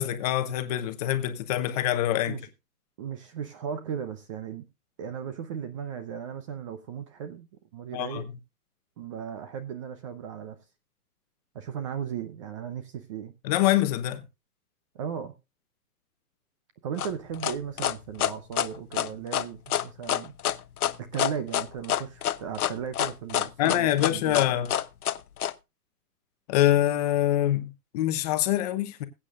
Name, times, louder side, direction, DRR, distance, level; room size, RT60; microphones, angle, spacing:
voice 1, 0.0-2.4 7.9-8.2 13.4-14.2 23.6-24.7 26.5-29.0, left 13 dB, 25° left, 0.9 m, -25 dB
voice 2, 3.0-4.6 5.0-7.5 7.7-8.3 9.0-10.6 11.5-13.3 14.9-15.3 16.8-20.3 21.0-24.4, right 8 dB, 20° right, 0.6 m, -36 dB
sound 1, 17.0-25.5, left 11 dB, 70° left, 0.8 m, -27 dB
20.5 x 8.6 x 2.4 m
hypercardioid pair, 145°, 46 cm